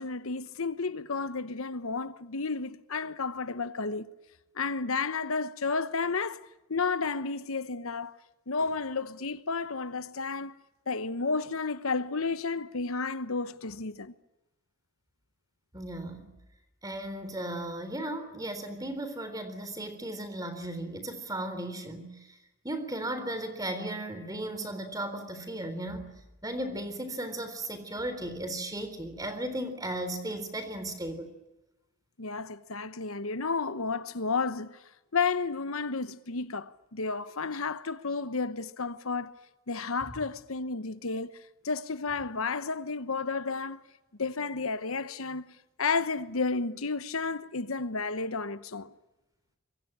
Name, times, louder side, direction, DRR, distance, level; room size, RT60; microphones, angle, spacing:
voice 1, 0.0-4.1 4.5-6.4 6.7-8.2 8.5-10.6 10.9-14.1 32.2-34.8 35.1-39.3 39.7-41.3 41.6-43.8 44.2-45.4 45.8-48.9, left 4 dB, 80° left, 1.1 m, -32 dB
voice 2, 15.7-16.3 16.8-22.4 22.6-26.1 26.4-31.3, right 1 dB, 15° right, 3.8 m, -36 dB
25.5 x 23.0 x 8.8 m
head